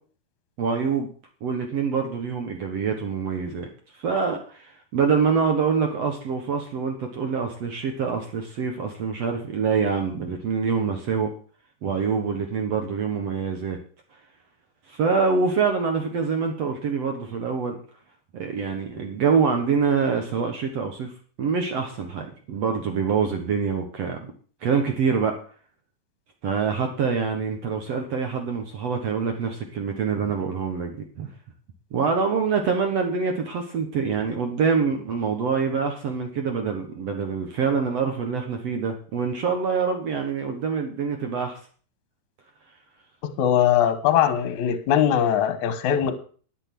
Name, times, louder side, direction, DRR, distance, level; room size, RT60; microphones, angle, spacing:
voice 1, 0.6-1.1 1.4-3.7 3.9-11.3 11.8-13.8 14.9-17.8 18.3-21.1 21.4-24.3 24.6-25.3 26.4-31.3 31.9-41.6, right 5 dB, 60° right, 3 dB, 1.8 m, -25 dB
voice 2, 43.2-46.1, left 9 dB, 60° left, 10 dB, 2.1 m, -21 dB
12.0 x 8.9 x 6.0 m, 0.42 s
omnidirectional pair, 4.6 m